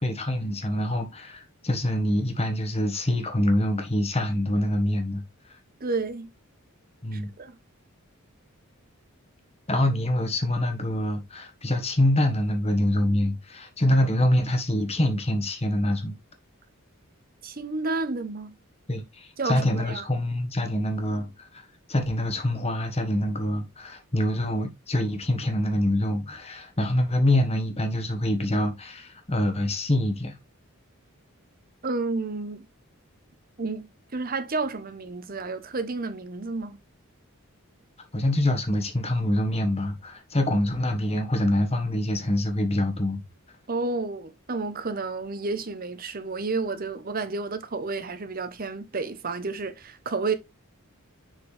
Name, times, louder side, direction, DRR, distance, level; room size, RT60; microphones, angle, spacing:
voice 1, 0.0-5.2 7.0-7.3 9.7-16.1 18.9-30.4 38.1-43.2, left 1 dB, 30° left, 1.5 m, -25 dB
voice 2, 5.8-6.3 7.1-7.5 17.4-18.6 19.4-20.1 31.8-32.7 33.6-36.8 43.7-50.4, right 3 dB, 40° right, 0.9 m, -31 dB
7.1 x 4.5 x 3.3 m
head